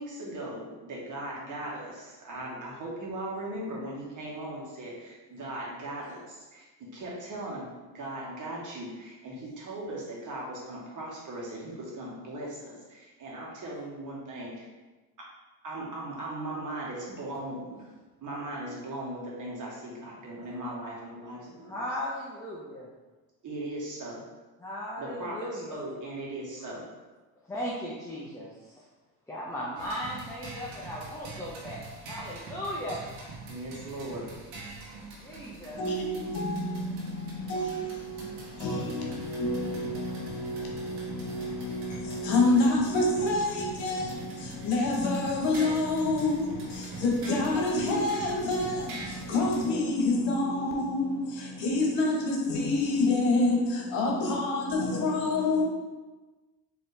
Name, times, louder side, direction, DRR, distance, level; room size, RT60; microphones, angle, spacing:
voice 1, 0.0-6.6 6.9-7.6 7.9-14.7 15.2-15.3 15.6-17.9 18.2-21.7 23.4-24.2 25.0-26.8 33.5-34.2, right 1 dB, 40° right, 1.5 m, -38 dB
voice 2, 21.7-22.9 24.6-25.8 27.5-28.5 29.3-31.8 32.1-33.0 35.2-35.8, equal, 5° left, 0.7 m, -36 dB
sound 1, 29.7-49.7, right 3 dB, 80° right, 1.3 m, -44 dB
voice 3, 35.7-55.6, left 2 dB, 70° left, 1.2 m, -28 dB
4.3 x 3.1 x 3.3 m
supercardioid pair, 95°, 46 cm